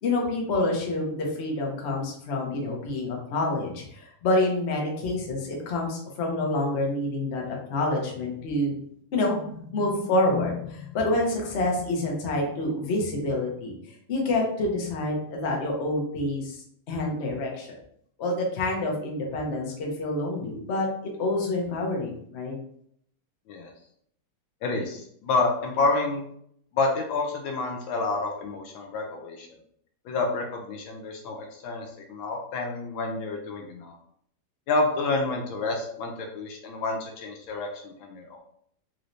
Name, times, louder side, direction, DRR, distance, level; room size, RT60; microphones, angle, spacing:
voice 1, 0.0-8.7 9.1-16.6 16.9-17.8 18.2-22.6, left 2 dB, 60° left, 0 dB, 0.7 m, -27 dB
voice 2, 24.6-26.3 26.7-29.5 30.0-33.9 34.7-38.4, left 3 dB, 75° left, 2 dB, 1.4 m, -29 dB
4.0 x 3.1 x 2.6 m, 0.68 s
omnidirectional pair, 2.3 m